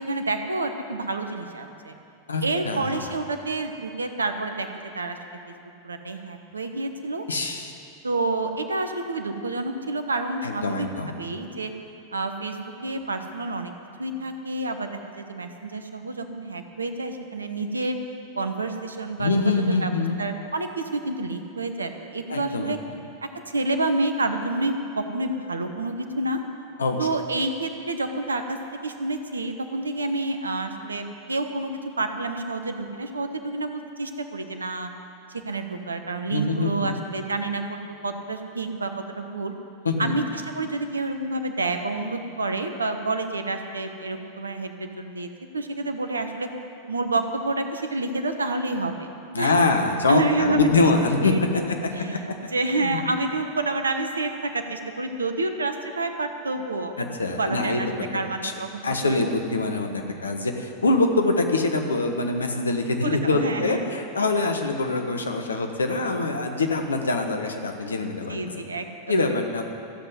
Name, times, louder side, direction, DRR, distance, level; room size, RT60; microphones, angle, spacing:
voice 1, 0.0-2.0 2.4-4.7 4.9-5.2 5.5-5.6 5.8-7.2 8.0-10.9 11.2-11.7 12.1-13.7 14.0-18.0 18.3-19.9 20.2-22.8 23.2-26.4 27.0-34.9 35.3-39.5 40.0-46.5 46.9-49.1 49.4-49.6 50.1-50.9 51.2-52.2 52.5-56.9 57.4-57.9 58.1-59.2 60.1-60.3 63.0-63.9 68.3-69.3, right 2 dB, 75° right, 7 dB, 1.1 m, -29 dB
voice 2, 2.3-3.0 7.3-7.7 10.4-11.2 19.2-20.2 22.3-22.8 26.8-27.1 36.3-37.0 39.8-40.2 49.3-51.7 52.1-52.2 52.8-53.0 57.0-57.8 58.1-58.5 58.8-68.6 69.1-69.6, left 3 dB, 75° left, 4 dB, 1.3 m, -24 dB
14.5 x 7.9 x 9.5 m, 2.7 s
figure-of-eight pair, 90°, 0 cm